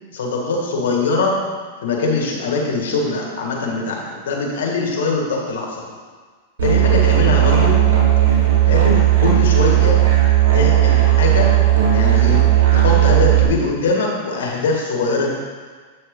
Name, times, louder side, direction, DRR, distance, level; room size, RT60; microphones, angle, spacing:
voice 1, 0.1-1.3 1.8-5.9 6.6-7.8 8.7-10.0 10.5-11.5 11.9-12.4 12.7-15.3, left 3 dB, 75° left, 0 dB, 2.0 m, -22 dB
Musical instrument, 6.6-13.4, right 13 dB, 85° right, 2.0 m, -14 dB
8.4 x 6.5 x 3.9 m, 1.5 s
hypercardioid pair, 125°, 0 cm